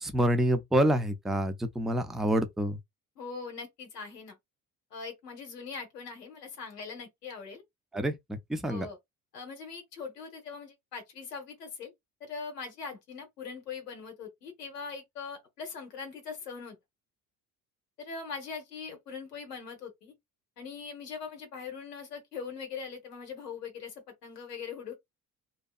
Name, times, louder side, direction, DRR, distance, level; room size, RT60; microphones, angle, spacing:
voice 1, 0.0-2.8 7.9-8.9, right 1 dB, ahead, 0.4 m, -27 dB
voice 2, 3.2-4.4 4.9-7.6 8.7-9.0 9.3-11.9 12.2-16.8 18.0-20.1 20.6-25.0, left 5 dB, 90° left, 0.8 m, -41 dB
2.7 x 2.3 x 2.3 m
hypercardioid pair, 55°, 46 cm